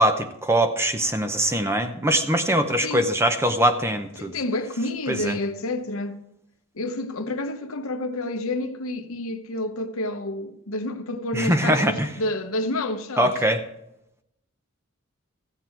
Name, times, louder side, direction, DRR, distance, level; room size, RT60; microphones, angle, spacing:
voice 1, 0.0-4.3 5.1-5.4 11.3-12.1 13.2-13.6, right 1 dB, 10° right, 0.7 m, -22 dB
voice 2, 4.2-6.2 6.7-13.3, left 2 dB, 80° left, 0.9 m, -29 dB
14.5 x 8.1 x 4.6 m
head